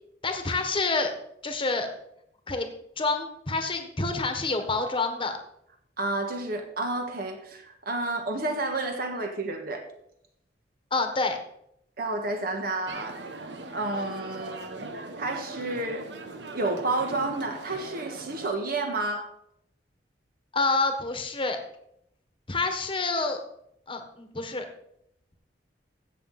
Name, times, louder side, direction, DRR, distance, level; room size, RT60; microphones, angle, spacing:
voice 1, 0.2-1.1 1.4-1.9 2.5-2.7 3.0-5.4 10.9-11.4 20.5-21.6 22.5-23.4 23.9-24.6, left 3 dB, 30° left, 6 dB, 1.3 m, -27 dB
voice 2, 6.0-9.9 12.0-16.1 16.5-19.3, right 2 dB, 55° right, 4 dB, 1.6 m, -31 dB
sound 1, 12.9-18.5, right 2 dB, 75° right, 1.2 m, -40 dB
15.5 x 6.7 x 4.2 m, 0.75 s
head